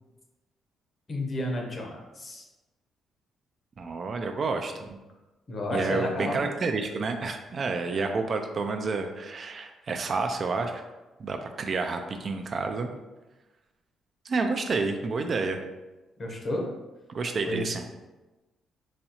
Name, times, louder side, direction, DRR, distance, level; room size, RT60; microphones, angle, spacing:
voice 1, 1.1-2.4 5.5-6.4 16.2-16.6 17.4-17.7, left 1 dB, 40° left, 0 dB, 0.8 m, -31 dB
voice 2, 3.8-5.0 5.7-10.8 11.2-12.9 14.3-15.6 17.1-17.8, right 4 dB, 45° right, 5 dB, 0.3 m, -29 dB
4.0 x 2.3 x 2.8 m, 1.1 s
cardioid pair, 90°, 0 cm